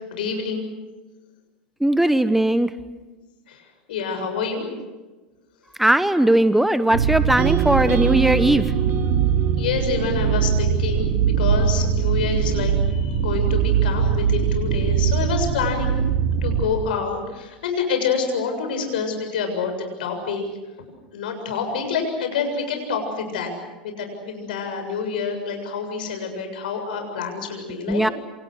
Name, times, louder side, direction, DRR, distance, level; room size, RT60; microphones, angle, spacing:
voice 1, 0.1-0.7 3.5-3.6 3.9-4.7 9.6-15.9 16.4-20.4 21.1-23.5 23.8-28.0, left 5 dB, 70° left, 5 dB, 7.3 m, -27 dB
voice 2, 1.8-2.7 5.8-8.7 27.9-28.1, right 1 dB, 5° right, 13 dB, 1.1 m, -18 dB
sound 1, 6.9-16.7, right 7 dB, 60° right, 3.3 m, -21 dB
sound 2, 7.4-11.5, right 11 dB, 40° right, 1.7 m, -29 dB
29.0 x 27.0 x 6.5 m, 1.2 s
hypercardioid pair, 85°, 5 cm